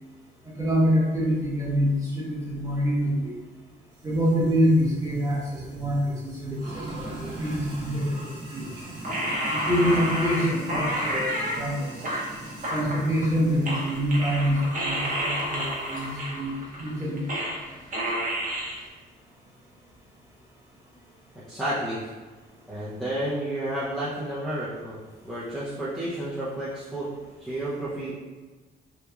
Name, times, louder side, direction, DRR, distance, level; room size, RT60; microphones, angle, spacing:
voice 1, 0.6-3.3 4.0-8.7 9.5-11.9 12.7-17.2, equal, 15° right, -7 dB, 1.0 m, -26 dB
Sink (filling or washing), 4.0-16.3, right 1 dB, 80° right, 0.9 m, -41 dB
sound 1, 9.0-11.6 12.0-13.4 13.7-17.7 17.9-18.8, equal, 40° right, 0.7 m, -30 dB
voice 2, 21.5-22.1 22.7-27.1 27.4-28.1, right 1 dB, ahead, -10 dB, 0.6 m, -31 dB
3.0 x 2.2 x 2.3 m, 1.3 s
cardioid pair, 90°, 20 cm